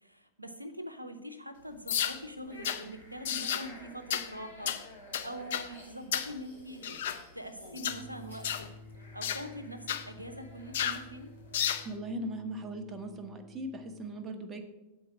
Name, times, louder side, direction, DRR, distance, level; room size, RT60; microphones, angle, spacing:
voice 1, 0.0-4.8 5.2-7.0 7.3-8.8 9.1-11.3, equal, 90° right, 8 dB, 0.8 m, -43 dB
sound 1, 1.9-2.2 2.6-2.8 3.3-3.7 4.1-4.3 4.7-4.8 5.1-5.7 6.1-6.3 6.8-7.2 7.8-8.0 8.4-8.7 9.2-9.4 9.9-10.1 10.7-11.0 11.5-11.9, left 9 dB, 60° left, 0.6 m, -32 dB
sound 2, 2.5-11.6, left 1 dB, 90° left, 2.1 m, -53 dB
sound 3, 7.8-14.0, left 1 dB, 65° right, 1.1 m, -52 dB
voice 2, 11.8-14.7, right 1 dB, 20° right, 6 dB, 1.0 m, -39 dB
8.3 x 4.6 x 7.3 m, 1.0 s
figure-of-eight pair, 90°, 0 cm